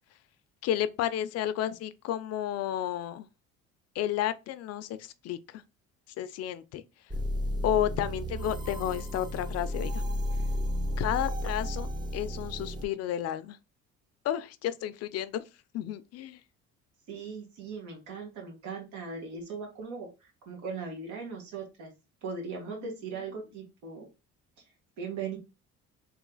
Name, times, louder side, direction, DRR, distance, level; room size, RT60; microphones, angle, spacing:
voice 1, 0.6-3.3 4.0-5.6 6.2-6.8 7.6-10.0 11.0-13.6 14.2-15.5 15.7-16.4, left 11 dB, 60° left, 0.4 m, -32 dB
sound 1, 7.1-12.9, equal, 15° right, 0.4 m, -33 dB
voice 2, 17.1-20.1 20.4-21.9 22.2-24.1 25.0-25.4, right 5 dB, 80° right, 1.6 m, -38 dB
3.2 x 3.1 x 3.8 m
cardioid pair, 135°, 29 cm